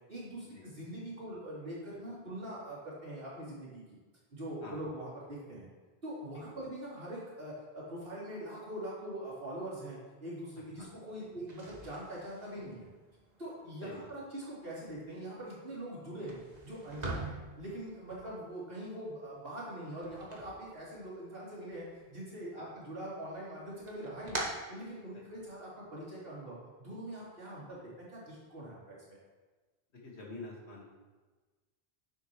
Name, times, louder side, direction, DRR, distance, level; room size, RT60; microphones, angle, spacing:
voice 1, 0.1-3.8 4.3-5.7 6.0-12.9 13.4-24.4 24.7-29.2, right 1 dB, 65° right, -8 dB, 3.3 m, -43 dB
sound 1, 11.4-21.4 21.7-22.5 22.9-25.5, right 2 dB, 40° right, 1.5 m, -45 dB
voice 2, 30.0-30.9, left 2 dB, 90° left, -2 dB, 2.0 m, -48 dB
10.5 x 7.3 x 3.1 m, 1.3 s
omnidirectional pair, 1.1 m